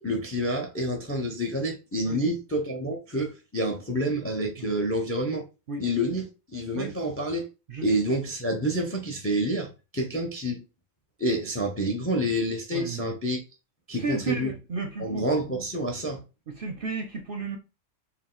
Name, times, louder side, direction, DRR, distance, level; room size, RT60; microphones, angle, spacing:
voice 1, 0.0-5.4 5.8-6.2 6.5-7.5 7.8-10.6 11.2-13.4 13.9-14.5 15.0-16.2, equal, 20° left, 0.4 m, -28 dB
voice 2, 12.7-13.2 14.0-15.3 16.5-17.6, right 4 dB, 55° right, 0.6 m, -33 dB
4.3 x 2.2 x 3.8 m
omnidirectional pair, 1.5 m